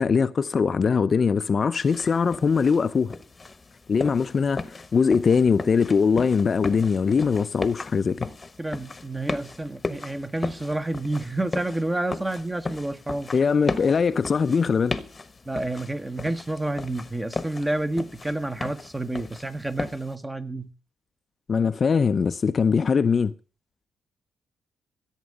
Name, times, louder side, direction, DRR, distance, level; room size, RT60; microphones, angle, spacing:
voice 1, 0.0-3.2 3.9-8.3 13.3-15.0 21.5-23.3, left 5 dB, 40° left, 0.5 m, -21 dB
sound 1, 1.8-20.1, left 3 dB, 25° left, 1.1 m, -36 dB
voice 2, 8.6-13.3 15.5-20.7, right 2 dB, 15° right, 1.1 m, -29 dB
14.5 x 8.2 x 6.5 m
cardioid pair, 90°, 0 cm